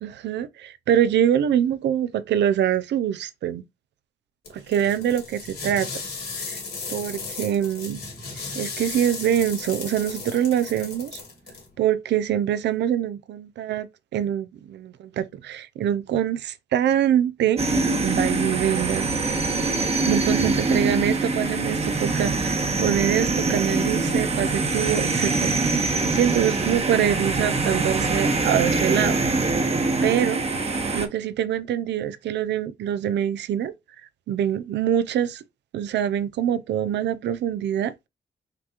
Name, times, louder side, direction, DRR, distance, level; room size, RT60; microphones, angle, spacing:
voice 1, 0.0-3.6 4.5-5.9 6.9-8.0 8.3-11.2 11.8-13.9 14.1-19.1 19.9-29.2 30.0-30.4 30.9-33.7 34.3-35.4 35.7-37.9, right 10 dB, 85° right, 0.4 m, -24 dB
sound 1, 4.4-11.7, left 4 dB, 65° left, 2.4 m, -35 dB
sound 2, 17.6-31.1, right 3 dB, 35° right, 0.9 m, -24 dB
5.8 x 2.4 x 2.8 m
cardioid pair, 65°, 18 cm